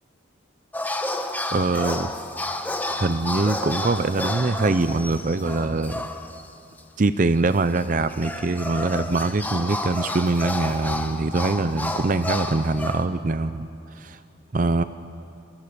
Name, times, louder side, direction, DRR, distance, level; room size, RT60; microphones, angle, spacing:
sound 1, 0.7-6.5 6.8-6.9 7.8-13.0, left 1 dB, 10° left, 1.1 m, -30 dB
voice 1, 1.5-2.1 2.9-6.1 7.0-13.7 14.0-14.2 14.5-14.8, right 3 dB, 40° right, 12 dB, 0.5 m, -23 dB
29.5 x 23.0 x 6.8 m, 2.8 s
head